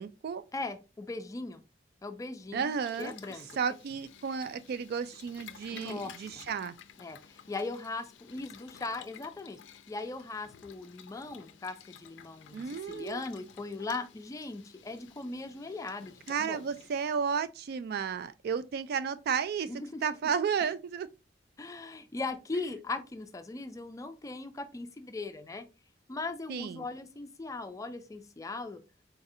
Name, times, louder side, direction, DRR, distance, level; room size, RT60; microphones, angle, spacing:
voice 1, 0.0-0.4 2.5-3.1 3.6-6.8 12.5-13.2 16.3-19.7 20.0-21.1 22.5-22.6 26.5-26.9, right 6 dB, 60° right, 0.3 m, -33 dB
voice 2, 0.5-1.6 2.0-2.7 3.0-3.5 5.7-6.4 7.0-9.6 9.9-16.6 19.7-20.0 21.6-25.6 26.1-28.8, left 3 dB, 20° left, 0.3 m, -39 dB
Boiling, 2.6-17.2, left 8 dB, 90° left, 0.4 m, -53 dB
4.0 x 2.6 x 2.6 m
head